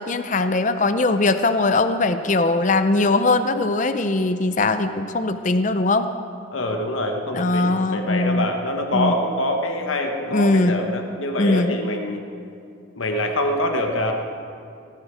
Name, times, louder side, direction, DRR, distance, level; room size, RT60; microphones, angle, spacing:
voice 1, 0.0-6.1 7.3-8.5 8.9-9.2 10.3-10.8 11.4-11.8, left 2 dB, 40° left, 10 dB, 0.5 m, -20 dB
voice 2, 6.5-12.2 12.9-14.1, left 1 dB, 85° left, 4 dB, 1.2 m, -25 dB
19.0 x 13.5 x 5.0 m, 2.5 s
head